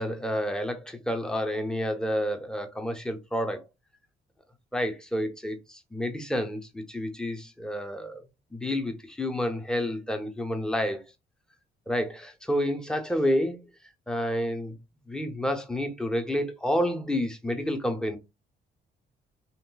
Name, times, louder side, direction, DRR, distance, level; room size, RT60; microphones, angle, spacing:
voice 1, 0.0-3.6 4.7-8.2 8.5-11.0 11.9-13.6 14.1-14.8 15.1-18.2, equal, 5° left, 0.7 m, -29 dB
3.1 x 2.9 x 2.2 m
cardioid pair, 90°, 20 cm